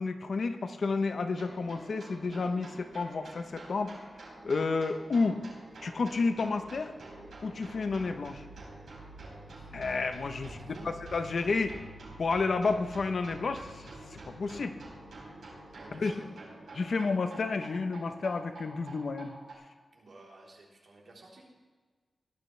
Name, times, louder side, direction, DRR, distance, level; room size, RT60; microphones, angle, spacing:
voice 1, 0.0-4.0 4.4-5.4 5.8-6.9 7.4-8.4 9.7-10.5 10.8-11.8 12.2-14.8 15.9-16.1 16.7-19.3, left 4 dB, 60° left, 8 dB, 0.9 m, -31 dB
sound 1, 1.3-19.5, right 2 dB, 85° right, 5.1 m, -48 dB
voice 2, 9.5-9.8 10.4-10.9 15.7-16.3 19.9-21.4, right 2 dB, 65° right, -3 dB, 3.7 m, -53 dB
18.0 x 12.0 x 3.3 m, 1.4 s
wide cardioid pair, 105°, 0 cm